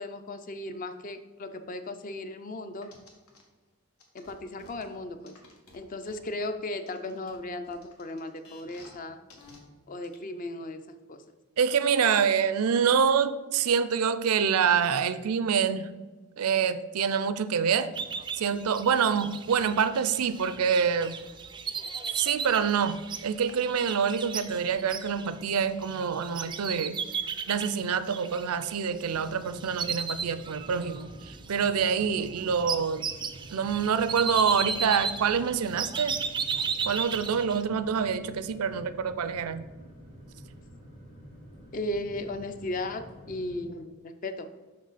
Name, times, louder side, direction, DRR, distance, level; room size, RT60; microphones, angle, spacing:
voice 1, 0.0-2.9 4.1-5.3 5.7-9.2 9.9-10.8 11.1-11.2 41.7-44.5, left 1 dB, 40° left, 9 dB, 0.5 m, -36 dB
sound 1, 2.8-3.4 4.0-6.4 6.9-9.0 9.3-9.6 10.0-10.1, left 3 dB, 90° left, 1.5 m, -53 dB
voice 2, 11.6-15.9 16.4-17.9 18.4-21.1 22.1-27.0 27.5-33.1 33.5-36.2 36.9-39.6, right 6 dB, 85° right, 13 dB, 0.4 m, -26 dB
sound 2, 17.9-29.3 29.6-31.0 31.3-37.6, right 5 dB, 20° right, 0.3 m, -35 dB
sound 3, 29.1-43.6, equal, 60° left, 2.3 m, -49 dB
6.3 x 6.0 x 4.1 m, 1.3 s
head